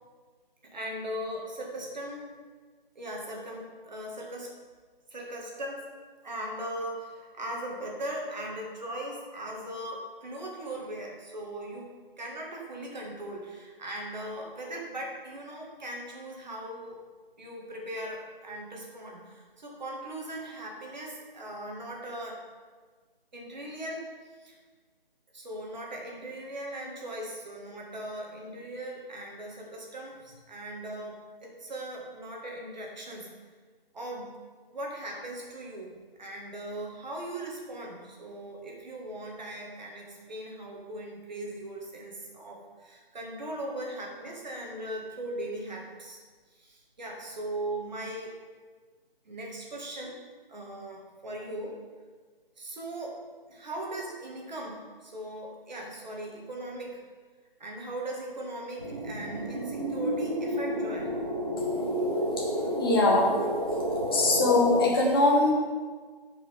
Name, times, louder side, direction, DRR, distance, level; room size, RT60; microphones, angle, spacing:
voice 1, 0.6-2.3 3.0-4.5 5.1-5.9 6.2-17.0 17.4-22.4 23.3-24.6 25.3-33.3 33.9-34.3 34.7-35.9 36.2-46.2 46.6-48.3 49.3-50.2 50.5-51.8 52.6-53.2 53.5-57.0 57.6-61.1, right 1 dB, 50° right, -1 dB, 1.9 m, -39 dB
sound 1, 58.8-64.9, equal, 20° right, 0.5 m, -30 dB
voice 2, 61.6-62.5 62.8-63.3 64.1-65.5, left 2 dB, 25° left, -2 dB, 1.2 m, -23 dB
12.5 x 5.3 x 3.5 m, 1.5 s
figure-of-eight pair, 160°, 29 cm